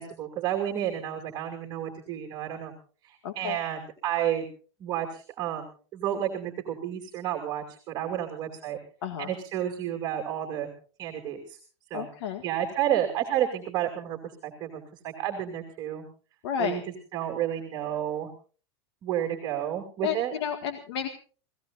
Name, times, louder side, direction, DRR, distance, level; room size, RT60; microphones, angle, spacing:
voice 1, 0.0-2.7 3.0-4.5 4.8-8.8 9.2-10.7 11.0-11.6 11.9-12.1 12.4-16.0 16.6-16.8 17.1-18.3 19.0-20.3, right 11 dB, 30° right, 1 dB, 2.7 m, -31 dB
voice 2, 3.2-3.6 9.0-9.3 11.9-12.4 16.4-16.8 20.0-21.1, left 8 dB, 75° left, 6 dB, 1.9 m, -31 dB
28.5 x 17.5 x 2.6 m, 0.39 s
supercardioid pair, 160°, 14 cm